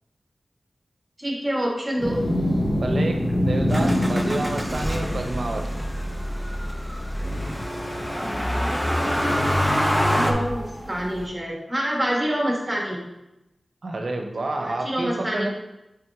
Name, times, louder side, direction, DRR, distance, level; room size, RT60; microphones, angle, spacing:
voice 1, 1.2-2.2 10.1-13.0 14.6-15.5, equal, 20° right, -2 dB, 1.9 m, -26 dB
sound 1, 2.0-11.3, equal, 25° left, 1.0 m, -28 dB
voice 2, 2.7-5.7 13.8-15.5, right 2 dB, 70° right, 4 dB, 0.8 m, -29 dB
Motor vehicle (road), 3.7-10.3, equal, 5° left, 0.7 m, -26 dB
7.7 x 3.5 x 3.6 m, 0.92 s
wide cardioid pair, 65°, 0 cm